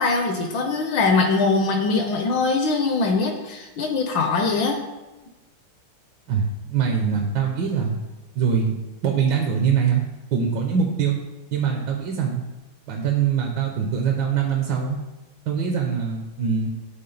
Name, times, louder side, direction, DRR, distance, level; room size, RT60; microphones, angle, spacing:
voice 1, 0.0-4.8, left 3 dB, 70° left, 4 dB, 1.2 m, -22 dB
voice 2, 6.3-8.0 8.4-8.8 9.0-10.0 10.3-11.2 11.5-12.4 12.9-15.0 15.5-16.7, right 6 dB, 70° right, 1 dB, 1.2 m, -23 dB
8.7 x 3.6 x 3.9 m, 1.1 s
omnidirectional pair, 2.4 m